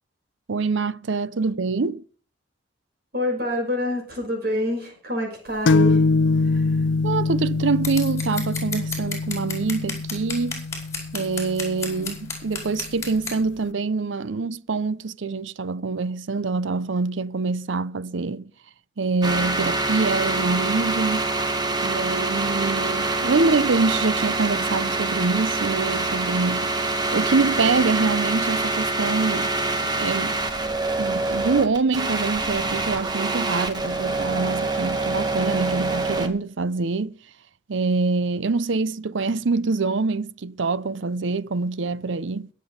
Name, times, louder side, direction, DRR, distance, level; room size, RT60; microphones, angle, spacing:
voice 1, 0.5-2.0 7.0-10.6 11.1-18.5 19.0-21.3 21.8-29.5 29.8-30.4 31.0-37.2 37.7-42.5, right 4 dB, 85° right, 0.6 m, -25 dB
voice 2, 3.1-6.0 6.4-6.9, left 1 dB, 55° right, 6.0 m, -27 dB
sound 1, 5.7-13.2, left 3 dB, 75° left, 0.5 m, -24 dB
Scissors, 7.8-13.4, left 4 dB, 15° left, 5.1 m, -32 dB
sound 2, 19.2-36.3, right 3 dB, 20° right, 1.7 m, -25 dB
22.0 x 7.6 x 5.1 m
head